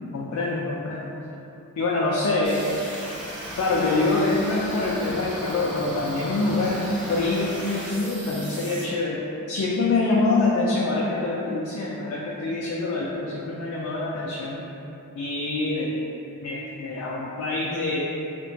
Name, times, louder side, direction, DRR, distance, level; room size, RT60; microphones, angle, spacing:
voice 1, 0.1-1.1 1.8-2.6 3.6-14.6 15.2-15.9 16.4-18.0, left 3 dB, 70° left, -5 dB, 0.3 m, -25 dB
sound 1, 2.4-8.8, right 1 dB, 75° right, 0.9 m, -36 dB
2.8 x 2.2 x 2.6 m, 2.9 s
head